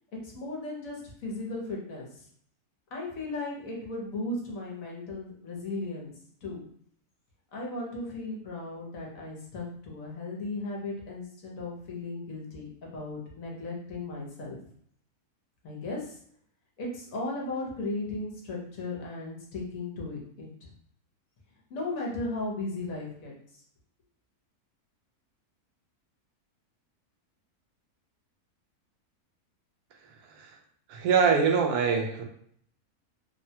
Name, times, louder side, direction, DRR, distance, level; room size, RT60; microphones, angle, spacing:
voice 1, 0.2-2.2 2.9-6.1 6.4-6.6 7.5-14.6 15.6-16.2 16.8-20.7 21.7-23.4, left 2 dB, 65° left, -2 dB, 1.2 m, -36 dB
voice 2, 30.9-32.2, right 6 dB, 80° right, 3 dB, 1.1 m, -24 dB
3.0 x 2.2 x 2.7 m, 0.62 s
omnidirectional pair, 1.6 m